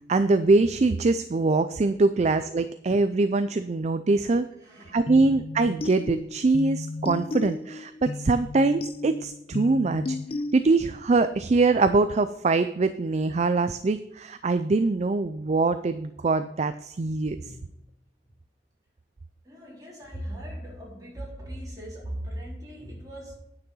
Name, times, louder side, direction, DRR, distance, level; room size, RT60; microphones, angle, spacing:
voice 1, 0.1-4.5 4.9-10.2 10.5-17.4, right 3 dB, 40° right, 0.4 m, -23 dB
voice 2, 4.6-5.3 17.4-17.8 19.4-23.3, equal, 20° right, 3.7 m, -39 dB
sound 1, 5.1-11.0, left 2 dB, 30° left, 0.3 m, -34 dB
9.6 x 6.1 x 5.5 m
head